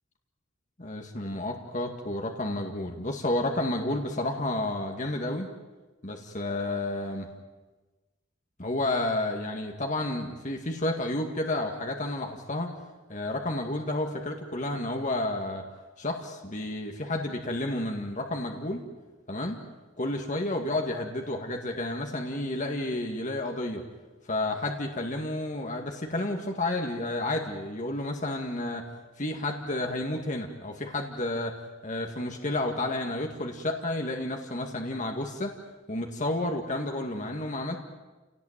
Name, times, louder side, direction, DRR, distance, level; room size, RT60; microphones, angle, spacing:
voice 1, 0.8-5.5 6.0-7.3 8.6-12.7 13.1-15.6 16.0-18.8 19.3-19.6 20.0-23.8 24.3-28.9 29.2-31.6 31.8-35.5 35.9-37.8, left 1 dB, 40° left, 2 dB, 2.1 m, -31 dB
28.0 x 18.0 x 9.1 m, 1.2 s
head